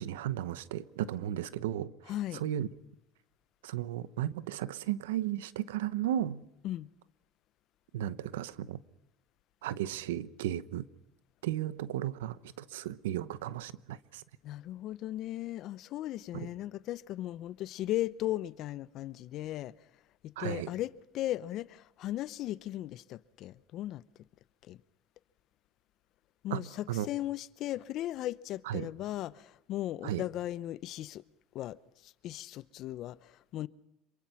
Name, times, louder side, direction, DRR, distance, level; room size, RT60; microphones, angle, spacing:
voice 1, 0.0-2.7 3.6-6.4 7.9-8.8 9.6-10.9 11.4-14.2 16.3-16.5 20.4-20.7 26.5-27.1 28.6-28.9 30.0-30.2, right 12 dB, 90° right, 0.9 m, -35 dB
voice 2, 2.1-2.4 6.6-6.9 14.4-19.7 20.2-24.0 24.7-24.8 26.4-31.2 31.5-33.7, left 14 dB, 60° left, 0.8 m, -37 dB
26.5 x 23.5 x 5.9 m
supercardioid pair, 95°, 0 cm